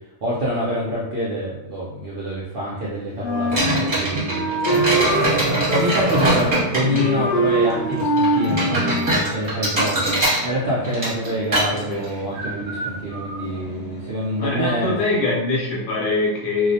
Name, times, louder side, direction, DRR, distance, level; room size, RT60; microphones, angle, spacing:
voice 1, 0.2-5.1 5.7-15.0, equal, 65° right, -7 dB, 0.6 m, -26 dB
Wind instrument woodwind instrument, 3.2-5.3 5.7-6.7 7.0-9.2, right 1 dB, 90° left, 0.4 m, -23 dB
sound 1, 3.5-14.5, right 1 dB, 30° right, 0.8 m, -24 dB
voice 2, 6.9-7.3 11.5-12.1 14.4-16.7, left 3 dB, 65° left, -3 dB, 0.9 m, -23 dB
2.3 x 2.0 x 2.7 m, 0.93 s
omnidirectional pair, 1.5 m